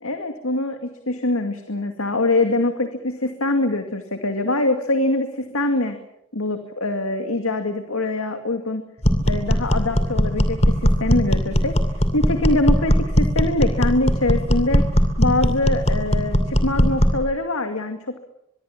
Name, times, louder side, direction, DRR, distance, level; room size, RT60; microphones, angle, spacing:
voice 1, 0.0-6.0 6.3-8.8 9.3-11.7 12.1-14.8 15.2-18.0, left 2 dB, 70° left, 6 dB, 2.3 m, -23 dB
sound 1, 9.0-17.2, equal, 30° left, 2.7 m, -19 dB
24.5 x 22.5 x 7.4 m, 0.79 s
head